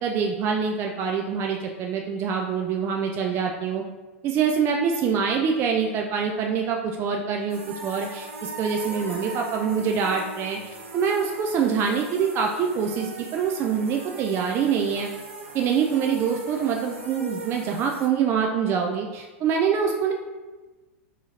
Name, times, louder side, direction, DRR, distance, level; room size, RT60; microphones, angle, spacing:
voice 1, 0.0-3.8 4.2-10.6 10.9-15.1 15.5-20.1, right 6 dB, 35° right, 2 dB, 0.3 m, -25 dB
sound 1, 7.5-18.1, right 2 dB, 80° right, 0.6 m, -39 dB
2.8 x 2.7 x 3.7 m, 1.2 s
hypercardioid pair, 100°, 7 cm